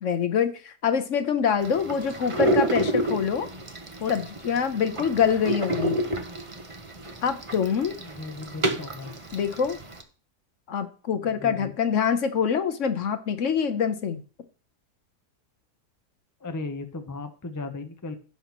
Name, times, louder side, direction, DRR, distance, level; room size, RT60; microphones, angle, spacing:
voice 1, 0.0-3.5 4.0-6.0 7.2-8.0 9.3-9.8 10.7-14.2, left 7 dB, 60° left, 9 dB, 1.0 m, -25 dB
sound 1, 1.6-10.0, right 1 dB, 25° right, 0.7 m, -30 dB
voice 2, 8.0-9.1 11.2-11.7 16.4-18.1, left 3 dB, 30° left, 7 dB, 0.3 m, -36 dB
16.0 x 5.8 x 3.0 m, 0.37 s
omnidirectional pair, 1.7 m